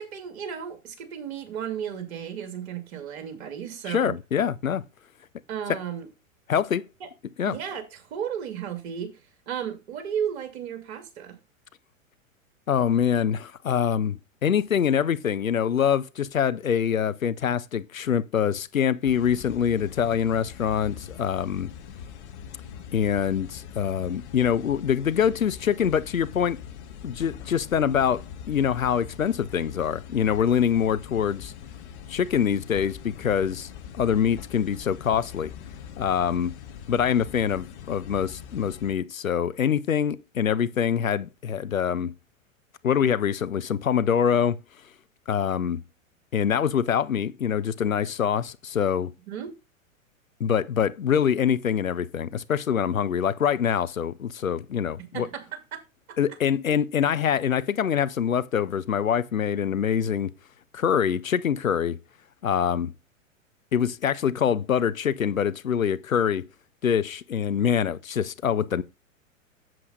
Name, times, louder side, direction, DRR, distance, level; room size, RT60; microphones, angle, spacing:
voice 1, 0.0-4.1 5.5-6.1 7.0-7.1 7.5-9.2 9.5-11.4 49.3-49.5 55.0-55.8 56.1-56.2, right 8 dB, 50° right, 2.5 m, -34 dB
voice 2, 3.9-4.8 6.5-6.9 7.4-7.6 12.7-21.7 22.9-26.6 27.0-31.5 32.1-33.7 33.9-35.5 36.0-36.6 36.9-42.1 42.8-44.6 45.3-45.8 46.3-49.1 50.4-55.3 56.2-60.3 60.7-62.0 62.4-62.9 63.7-66.5 66.8-68.8, left 8 dB, 80° left, 0.7 m, -24 dB
sound 1, 19.0-38.9, left 8 dB, 55° left, 1.5 m, -42 dB
7.7 x 7.7 x 4.0 m
figure-of-eight pair, 100°, 40 cm